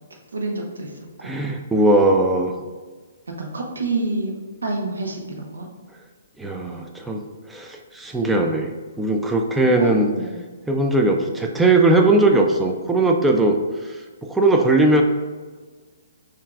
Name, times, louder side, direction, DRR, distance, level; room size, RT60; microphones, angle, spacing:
voice 1, 0.1-1.4 3.4-5.7 6.6-6.9 9.6-10.4, right 2 dB, 90° right, 1 dB, 0.7 m, -29 dB
voice 2, 1.2-2.5 6.4-7.2 7.5-8.7 9.0-10.1 10.7-13.6 13.8-14.0 14.3-15.0, right 2 dB, 5° right, 2 dB, 0.3 m, -19 dB
5.5 x 2.5 x 2.4 m, 1.4 s
hypercardioid pair, 145°, 0 cm